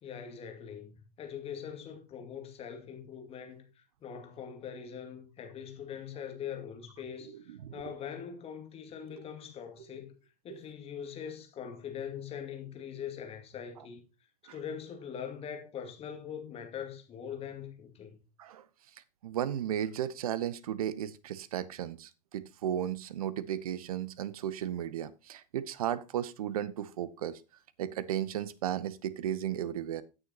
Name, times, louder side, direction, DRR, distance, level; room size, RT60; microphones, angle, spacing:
voice 1, 0.0-10.1 10.4-14.0 14.5-18.2, left 8 dB, 30° left, 2.2 m, -42 dB
voice 2, 19.2-27.3 27.8-30.0, right 10 dB, 60° right, 0.7 m, -34 dB
15.0 x 6.6 x 2.9 m
figure-of-eight pair, 80°, 20 cm